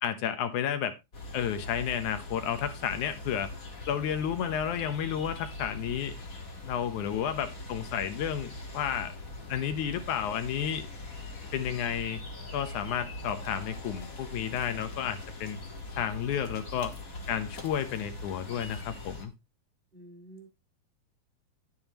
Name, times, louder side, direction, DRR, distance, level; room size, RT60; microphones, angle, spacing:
voice 1, 0.0-0.9 1.3-3.5 3.9-6.1 6.6-9.1 9.5-10.9 11.5-12.2 12.5-15.6 16.0-16.9 17.3-19.3, left 9 dB, 65° left, 10 dB, 2.3 m, -31 dB
sound 1, 1.1-19.2, left 2 dB, 45° left, 1.1 m, -42 dB
voice 2, 19.9-20.5, right 2 dB, 50° right, 4 dB, 0.6 m, -49 dB
11.0 x 8.7 x 3.0 m, 0.24 s
omnidirectional pair, 4.2 m